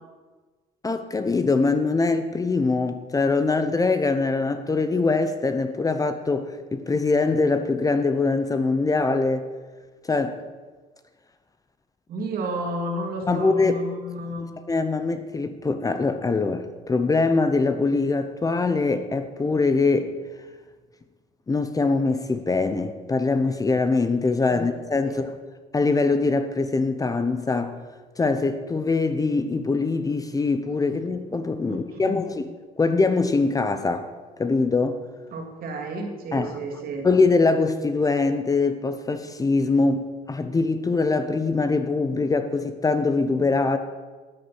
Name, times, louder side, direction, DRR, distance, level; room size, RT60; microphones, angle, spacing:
voice 1, 0.8-9.4 10.1-10.4 13.3-13.8 14.7-20.1 21.5-25.2 25.7-27.8 28.2-32.5 32.8-34.1 34.4-35.0 36.3-36.5 37.0-43.8, left 3 dB, 20° left, 9 dB, 0.8 m, -23 dB
voice 2, 12.1-14.5 24.5-24.7 25.0-25.2 31.6-32.2 35.3-37.1, right 1 dB, 60° right, 1 dB, 2.8 m, -32 dB
13.0 x 8.3 x 6.0 m, 1.4 s
cardioid pair, 110°, 17 cm